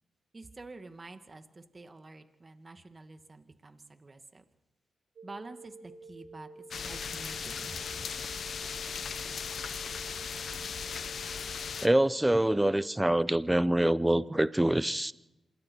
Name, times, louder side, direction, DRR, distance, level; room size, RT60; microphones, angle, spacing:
voice 1, 0.3-4.4 5.2-7.8, right 3 dB, 35° right, 2.2 m, -48 dB
sound 1, 5.2-13.0, right 3 dB, 60° right, 1.7 m, -50 dB
sound 2, 6.7-11.9, left 6 dB, 65° left, 0.9 m, -37 dB
voice 2, 11.8-15.1, right 1 dB, 10° right, 0.9 m, -25 dB
27.0 x 23.0 x 4.6 m
supercardioid pair, 50°, 0 cm